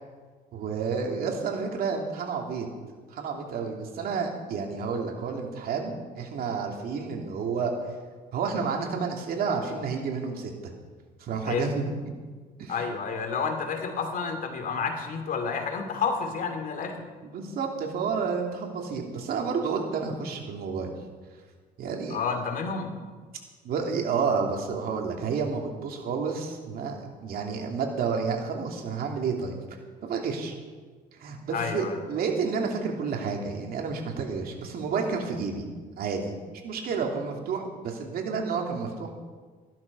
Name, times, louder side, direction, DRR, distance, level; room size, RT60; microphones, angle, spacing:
voice 1, 0.5-2.7 3.1-7.7 8.3-10.7 11.2-11.8 12.6-12.8 17.2-20.9 21.8-22.2 23.6-29.5 30.0-30.5 31.2-35.7 36.0-36.3 36.6-39.1, right 5 dB, 65° right, 2 dB, 2.7 m, -30 dB
voice 2, 12.7-17.0 22.1-23.0 31.5-32.0, left 5 dB, 55° left, 5 dB, 2.5 m, -30 dB
15.0 x 12.0 x 5.4 m, 1.4 s
cardioid pair, 110°, 17 cm